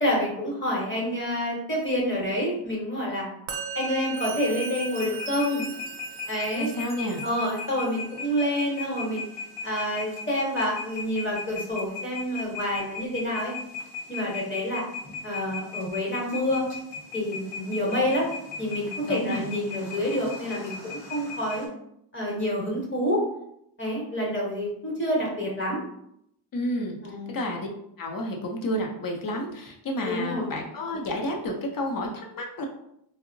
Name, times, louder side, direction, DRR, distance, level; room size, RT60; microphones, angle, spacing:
voice 1, 0.0-3.3 3.7-5.6 6.2-6.7 7.2-9.2 9.6-13.5 14.1-14.8 15.2-16.7 17.1-18.3 18.6-20.7 21.1-21.7 22.1-23.2 23.8-25.8 27.0-27.4 30.0-30.5, equal, 25° left, -3 dB, 0.9 m, -28 dB
Musical instrument, 3.5-10.8, right 7 dB, 65° right, 0.6 m, -41 dB
sound 1, 3.7-21.7, left 4 dB, 75° left, 0.9 m, -38 dB
Chime, 4.1-8.2, right 3 dB, 20° right, 0.4 m, -45 dB
voice 2, 6.6-7.2 19.1-19.5 26.5-27.0 27.3-27.7 28.0-32.7, left 1 dB, 50° left, 1 dB, 0.6 m, -30 dB
3.7 x 2.0 x 2.5 m, 0.75 s
wide cardioid pair, 160°, 44 cm